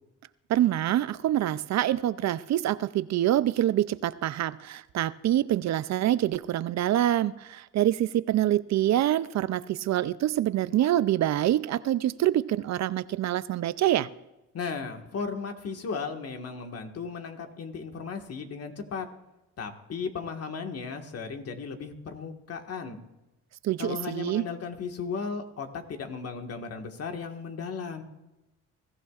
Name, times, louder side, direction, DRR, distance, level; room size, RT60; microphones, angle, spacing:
voice 1, 0.5-14.1 23.6-24.4, right 13 dB, 65° right, 16 dB, 0.5 m, -26 dB
voice 2, 14.5-19.1 19.6-23.0 23.8-28.0, left 5 dB, 55° left, 4 dB, 1.7 m, -35 dB
21.5 x 14.5 x 2.5 m, 0.98 s
cardioid pair, 90°, 30 cm